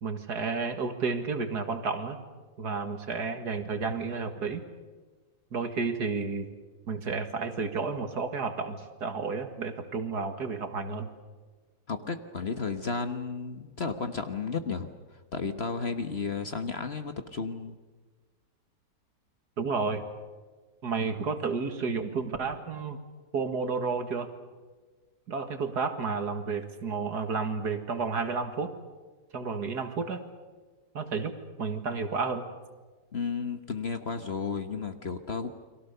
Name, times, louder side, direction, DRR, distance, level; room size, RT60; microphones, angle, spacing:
voice 1, 0.0-2.2 2.6-4.6 5.5-6.5 6.9-11.1 19.6-20.0 20.8-23.0 23.3-24.3 25.3-28.7 29.3-30.2 30.9-32.5, right 4 dB, 65° right, 7 dB, 2.4 m, -31 dB
voice 2, 11.9-14.9 15.3-17.8 33.1-35.5, left 5 dB, 40° left, 8 dB, 1.3 m, -33 dB
30.0 x 23.0 x 6.8 m, 1.4 s
omnidirectional pair, 1.9 m